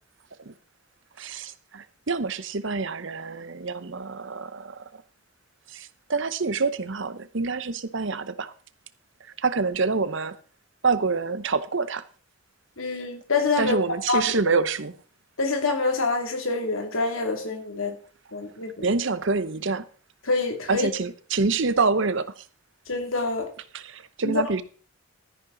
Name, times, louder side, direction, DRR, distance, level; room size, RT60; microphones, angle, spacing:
voice 1, 1.2-5.0 5.7-8.5 9.4-10.3 10.8-12.0 13.6-14.9 18.8-19.8 20.7-22.4 23.7-24.6, right 4 dB, 60° right, 0.8 m, -26 dB
voice 2, 12.8-13.8 14.1-14.3 15.4-18.0 18.3-18.9 20.2-20.9 22.9-23.5 24.2-24.4, left 3 dB, 70° left, 2.5 m, -26 dB
13.0 x 10.5 x 3.9 m
head